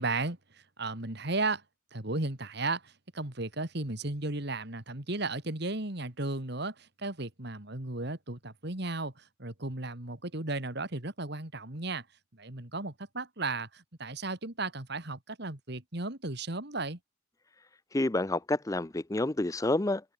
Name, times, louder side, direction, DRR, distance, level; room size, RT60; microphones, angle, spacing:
voice 1, 0.0-1.6 1.9-12.0 12.3-17.0, right 2 dB, 55° right, 2.8 m, -35 dB
voice 2, 17.9-20.0, left 2 dB, 15° left, 0.5 m, -28 dB
open air
head